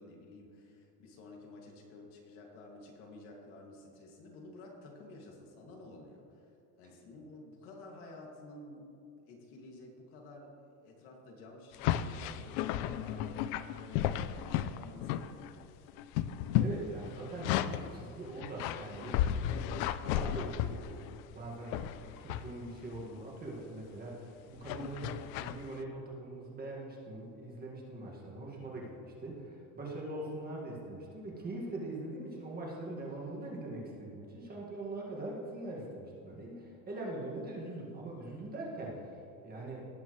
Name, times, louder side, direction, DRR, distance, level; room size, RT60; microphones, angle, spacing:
voice 1, 0.0-8.9 9.2-15.9, left 2 dB, 70° left, 0 dB, 2.3 m, -52 dB
sound 1, 11.7-15.6 15.9-17.9 18.4-21.2 21.7-22.5 22.9-23.2 24.6-25.6, left 11 dB, 90° left, 0.6 m, -34 dB
voice 2, 16.6-39.9, right 2 dB, 25° right, -3 dB, 1.9 m, -42 dB
18.0 x 7.2 x 3.2 m, 2.7 s
cardioid pair, 155°, 40 cm